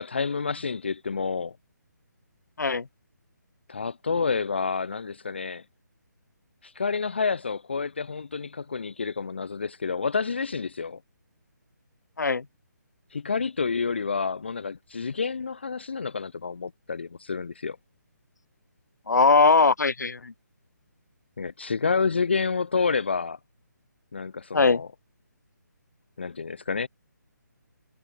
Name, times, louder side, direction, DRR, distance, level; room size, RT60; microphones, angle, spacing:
voice 1, 0.0-1.6 3.7-5.6 6.6-11.0 13.1-17.8 21.4-23.4 24.1-24.9 26.2-26.9, left 5 dB, 35° left, 0.5 m, -29 dB
voice 2, 19.1-20.3 24.5-24.8, left 4 dB, 65° left, 2.2 m, -20 dB
hypercardioid pair, 180°, 10 cm